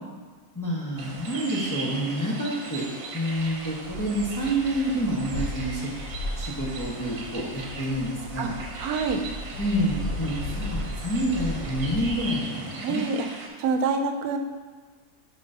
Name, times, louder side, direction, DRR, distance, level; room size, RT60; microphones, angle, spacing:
voice 1, 0.5-2.8 3.1-5.9 6.4-8.6 9.6-13.1, equal, 15° left, -5 dB, 0.8 m, -28 dB
sound 1, 1.0-13.5, right 3 dB, 70° right, 1.3 m, -39 dB
sound 2, 3.4-12.2, left 1 dB, 60° left, 1.0 m, -36 dB
voice 2, 8.8-9.2 12.8-13.2 13.6-14.4, right 4 dB, 90° right, 6 dB, 1.1 m, -26 dB
9.0 x 5.4 x 2.7 m, 1.5 s
omnidirectional pair, 1.5 m